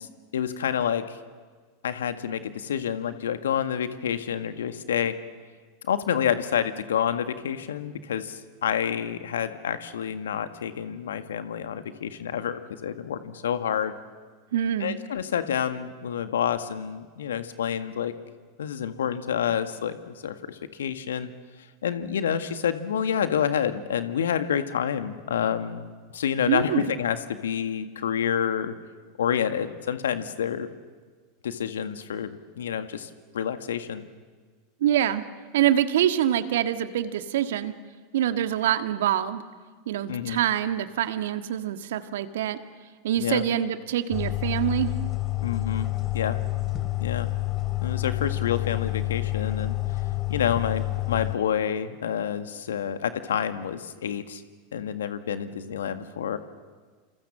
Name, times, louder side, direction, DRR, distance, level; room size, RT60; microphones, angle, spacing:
voice 1, 0.3-1.2 1.8-5.1 5.8-13.9 14.8-18.1 18.6-21.3 21.8-28.7 29.2-30.7 31.4-34.0 40.1-40.4 43.2-43.4 45.4-45.9 46.1-46.4 47.0-47.3 47.8-50.0 50.3-54.4 54.7-56.4, left 8 dB, 75° left, 9 dB, 1.8 m, -28 dB
voice 2, 14.5-15.0 26.5-26.9 34.8-35.2 35.5-37.7 38.1-39.4 39.9-42.6 43.0-44.9, right 11 dB, 70° right, 9 dB, 1.6 m, -25 dB
sound 1, 44.1-51.4, left 17 dB, 35° left, 2.7 m, -28 dB
28.0 x 28.0 x 7.5 m, 1.5 s
hypercardioid pair, 90°, 0 cm